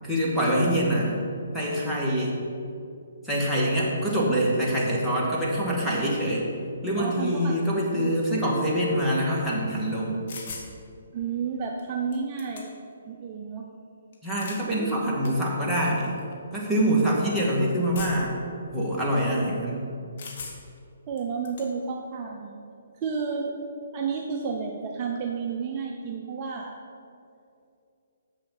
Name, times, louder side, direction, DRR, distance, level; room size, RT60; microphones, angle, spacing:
voice 1, 0.0-1.2 1.5-2.4 3.2-6.5 6.8-10.2 14.2-16.2 16.5-18.4 18.7-19.8, equal, ahead, -8 dB, 2.0 m, -25 dB
voice 2, 0.6-1.0 7.0-7.5 7.9-8.2 11.1-12.7 13.1-13.7 14.8-15.2 19.4-19.8 21.1-22.6 23.0-23.6 23.9-26.7, right 5 dB, 30° right, 0 dB, 0.8 m, -31 dB
sound 1, 10.3-10.7 11.8-11.9 12.1-12.9 14.1-14.7 15.2-15.3 16.2-16.3 17.9-18.4 20.2-20.8 21.2-21.7, left 4 dB, 50° left, 1.4 m, -40 dB
7.3 x 6.7 x 6.0 m, 2.6 s
hypercardioid pair, 140°, 0 cm